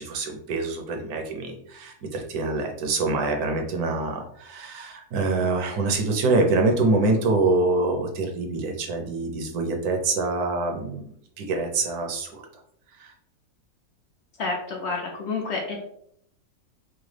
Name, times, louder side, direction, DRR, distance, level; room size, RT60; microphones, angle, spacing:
voice 1, 0.0-11.1 11.4-12.4 13.0-13.1, right 3 dB, 75° right, 3 dB, 1.2 m, -25 dB
voice 2, 14.4-15.8, left 3 dB, 60° left, 0 dB, 0.8 m, -29 dB
4.7 x 2.2 x 3.2 m, 0.69 s
omnidirectional pair, 1.6 m